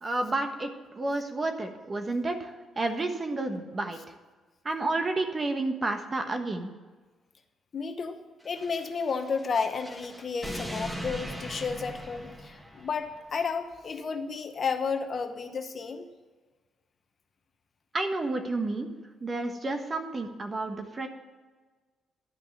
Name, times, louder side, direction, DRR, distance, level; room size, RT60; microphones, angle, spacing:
voice 1, 0.0-4.0 4.6-6.7 17.9-18.9 19.2-21.1, right 2 dB, 30° right, 6 dB, 1.3 m, -30 dB
voice 2, 7.7-8.2 8.4-16.1, left 5 dB, 45° left, 7 dB, 0.9 m, -32 dB
sound 1, 8.4-13.2, equal, 10° right, 1.4 m, -40 dB
11.5 x 5.4 x 6.6 m, 1.4 s
cardioid pair, 90°, 0 cm